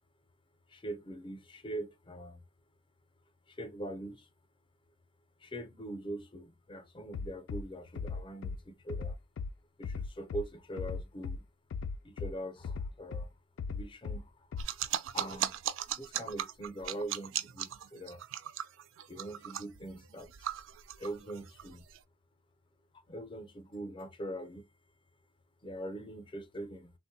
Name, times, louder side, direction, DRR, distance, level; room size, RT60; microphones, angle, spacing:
voice 1, 0.7-2.4 3.5-4.3 5.4-9.2 9.8-11.4 12.0-13.3 13.7-15.5 16.0-18.2 19.1-20.5 21.0-21.9 23.1-24.7 25.6-26.9, right 1 dB, 25° left, 0.5 m, -42 dB
Bass drum, 7.1-7.6 8.0-8.6 8.9-9.5 9.8-10.4 10.8-11.4 11.7-12.3 12.6-13.3 13.6-14.2 14.5-14.6, left 5 dB, 80° left, 0.3 m, -37 dB
sound 1, 14.6-22.0, right 11 dB, 80° right, 0.3 m, -37 dB
3.4 x 2.1 x 2.7 m
head